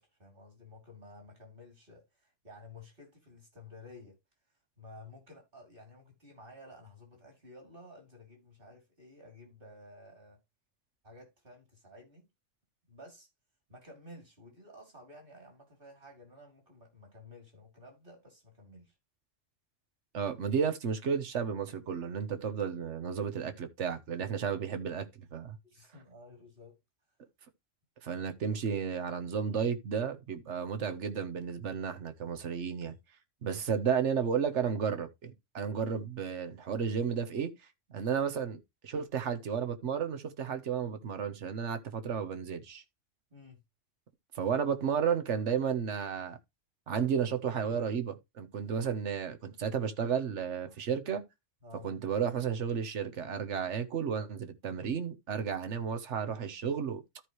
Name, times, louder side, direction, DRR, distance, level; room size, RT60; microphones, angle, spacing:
voice 1, 0.0-4.2 4.8-10.4 11.0-12.3 12.9-13.3 13.7-18.9 25.6-26.8 43.3-43.6 51.6-51.9, left 2 dB, 45° right, 3.2 m, -53 dB
voice 2, 20.1-25.6 28.0-33.0 33.4-37.5 37.9-38.6 38.8-42.8 44.3-46.4 46.9-51.2 51.8-57.0, right 7 dB, 65° right, 1.3 m, -33 dB
13.5 x 4.8 x 3.1 m
omnidirectional pair, 1.3 m